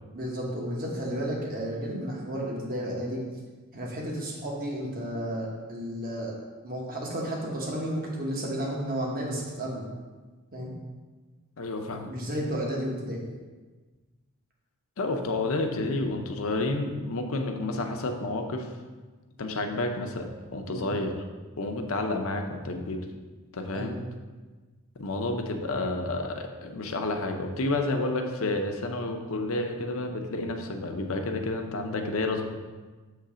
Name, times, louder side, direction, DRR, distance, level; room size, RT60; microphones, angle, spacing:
voice 1, 0.1-3.2 3.7-6.3 6.6-9.9 10.5-10.7 12.0-13.2 20.7-20.9 23.7-24.0, equal, 40° right, -2 dB, 1.1 m, -32 dB
voice 2, 11.6-12.1 15.0-18.7 19.4-21.2 21.6-23.0 23.5-24.0 25.0-32.4, left 2 dB, 65° left, 4 dB, 0.6 m, -30 dB
6.7 x 3.2 x 4.9 m, 1.3 s
head